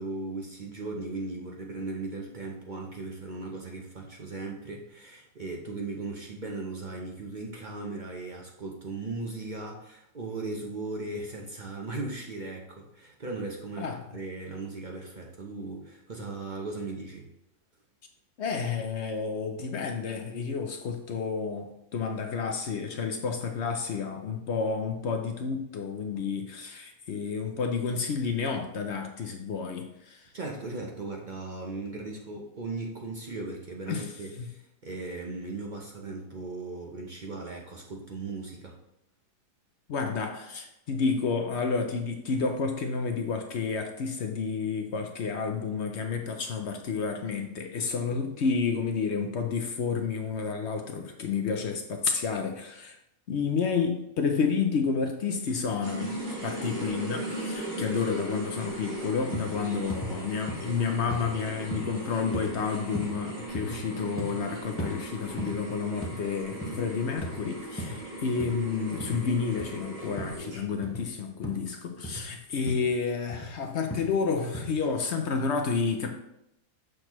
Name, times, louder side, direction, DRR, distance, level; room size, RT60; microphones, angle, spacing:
voice 1, 0.0-17.3 30.3-38.8 59.5-60.2, right 3 dB, 50° right, 0 dB, 0.5 m, -37 dB
voice 2, 18.4-30.3 33.9-34.1 34.4-34.5 39.9-53.0 53.3-76.1, left 5 dB, 60° left, 4 dB, 0.7 m, -30 dB
sound 1, 55.8-70.9, right 1 dB, 75° right, 2.3 m, -38 dB
sound 2, 59.3-59.5 59.9-60.1 60.5-60.7 61.1-61.3 61.7-61.9 62.3-62.5 62.9-63.2 63.5-63.8 64.2-64.4 64.8-64.9 65.4-65.6 66.0-66.2 66.5-66.8 67.2-67.4 67.8-68.0 68.4-68.6 69.0-69.2 69.6-69.8 70.2-70.4 70.8-71.1 71.4-71.7 72.0-72.3 72.7-72.9 73.3-73.5 73.9-74.1 74.5-74.7, equal, 20° left, 0.4 m, -36 dB
6.5 x 6.1 x 3.0 m, 0.82 s
omnidirectional pair, 1.8 m